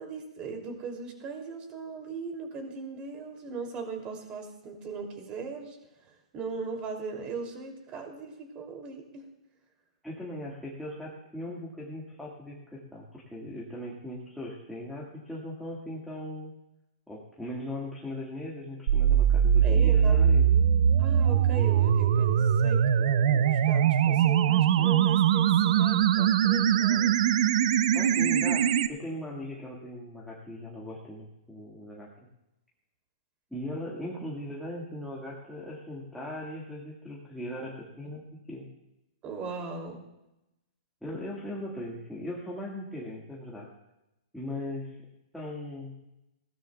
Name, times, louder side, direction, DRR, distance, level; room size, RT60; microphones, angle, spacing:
voice 1, 0.0-5.8 6.3-9.3 19.6-20.2 21.0-27.2 39.2-40.1, right 4 dB, 25° right, 2 dB, 2.8 m, -38 dB
voice 2, 10.0-16.5 17.1-20.5 27.9-32.1 33.5-38.7 41.0-43.7 44.3-45.0 45.3-46.0, left 1 dB, ahead, -5 dB, 1.8 m, -39 dB
sound 1, 18.9-28.9, right 9 dB, 55° right, 0.7 m, -22 dB
20.5 x 16.5 x 2.3 m, 0.92 s
hypercardioid pair, 150°, 4 cm